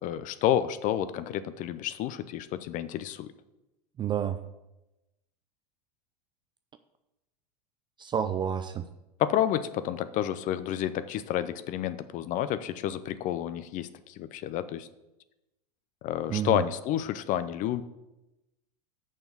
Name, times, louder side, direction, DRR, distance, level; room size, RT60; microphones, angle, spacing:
voice 1, 0.0-3.3 9.2-14.9 16.0-17.8, left 11 dB, 40° left, 14 dB, 0.6 m, -30 dB
voice 2, 4.0-4.4 8.0-8.9 16.3-16.6, right 9 dB, 20° right, 9 dB, 0.4 m, -29 dB
6.8 x 6.0 x 6.8 m, 0.97 s
figure-of-eight pair, 85°, 21 cm